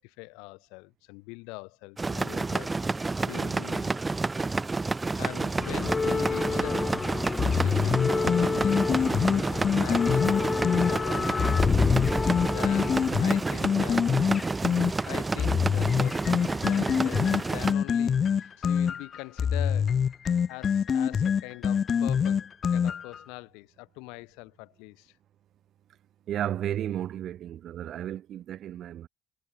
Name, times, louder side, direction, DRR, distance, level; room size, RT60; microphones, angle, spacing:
voice 1, 0.0-4.0 5.1-7.0 7.4-14.1 15.0-22.5 22.7-25.2, left 29 dB, 85° left, 5.7 m, -43 dB
sound 1, 2.0-17.7, right 3 dB, 20° right, 1.9 m, -30 dB
sound 2, 5.6-15.0 15.9-17.0 17.3-17.5 18.4-18.5, left 4 dB, 30° left, 2.4 m, -30 dB
sound 3, 7.4-10.9 11.4-14.9 15.4-23.2, left 7 dB, 45° left, 0.6 m, -25 dB
voice 2, 26.3-29.1, right 11 dB, 60° right, 4.1 m, -33 dB
supercardioid pair, 75°, 0 cm